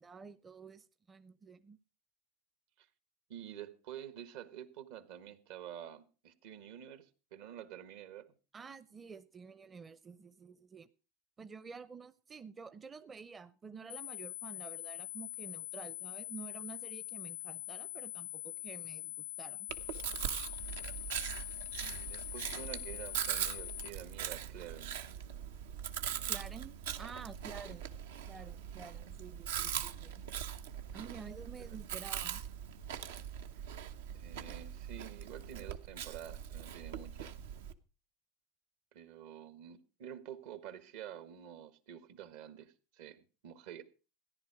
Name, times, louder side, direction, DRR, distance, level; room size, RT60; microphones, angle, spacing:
voice 1, 0.0-1.8 8.5-10.9 11.4-19.7 26.3-27.9 28.3-30.2 30.9-32.4, right 5 dB, 20° right, 0.5 m, -50 dB
voice 2, 3.3-8.3 21.8-24.9 27.6-27.8 31.6-31.8 34.1-37.3 38.9-43.8, right 10 dB, 75° right, 1.4 m, -49 dB
sound 1, 13.9-23.9, left 16 dB, 70° left, 0.5 m, -44 dB
Chewing mastication, 19.7-37.7, right 9 dB, 90° right, 0.9 m, -41 dB
14.0 x 10.5 x 4.8 m
supercardioid pair, 115°, 0 cm